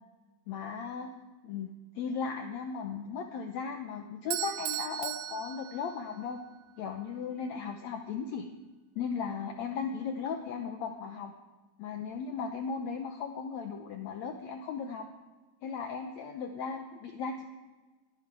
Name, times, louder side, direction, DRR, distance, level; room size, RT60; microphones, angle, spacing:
voice 1, 0.5-1.1 1.4-1.7 2.0-6.4 6.8-8.5 9.0-11.3 11.8-15.1 15.6-17.4, left 6 dB, 70° left, 4 dB, 1.9 m, -36 dB
Bell / Doorbell, 4.3-6.4, right 16 dB, 85° right, 2.4 m, -37 dB
21.0 x 14.0 x 4.8 m, 1.2 s
omnidirectional pair, 4.0 m